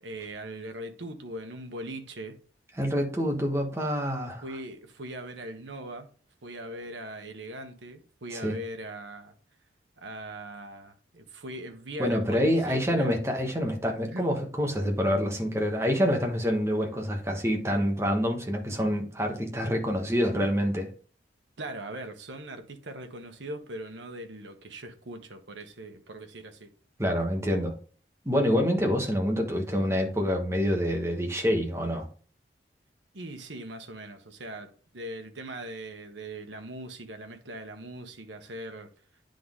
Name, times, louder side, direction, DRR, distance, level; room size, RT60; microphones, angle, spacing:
voice 1, 0.0-2.4 4.4-6.1 6.4-9.3 10.0-13.2 14.1-14.2 21.6-26.7 33.1-38.9, right 1 dB, 80° right, 1.1 m, -40 dB
voice 2, 2.8-4.4 8.3-8.6 12.0-20.9 27.0-27.7 28.2-32.1, equal, 15° right, 1.2 m, -27 dB
9.7 x 3.8 x 3.7 m
head